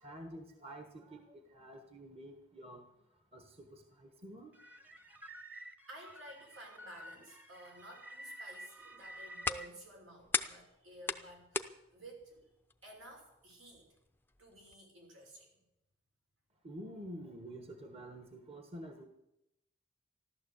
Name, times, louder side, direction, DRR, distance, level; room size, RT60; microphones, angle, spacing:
voice 1, 0.0-2.8 3.3-4.5 16.6-19.1, right 1 dB, 30° right, 5 dB, 1.4 m, -49 dB
sound 1, 4.5-9.7, right 1 dB, 10° right, 1.0 m, -51 dB
voice 2, 5.9-12.5 12.8-13.9 14.4-15.6, right 1 dB, 80° right, 0 dB, 5.7 m, -53 dB
sound 2, 8.8-14.7, left 3 dB, 10° left, 0.6 m, -42 dB
14.5 x 12.0 x 8.1 m, 0.88 s
head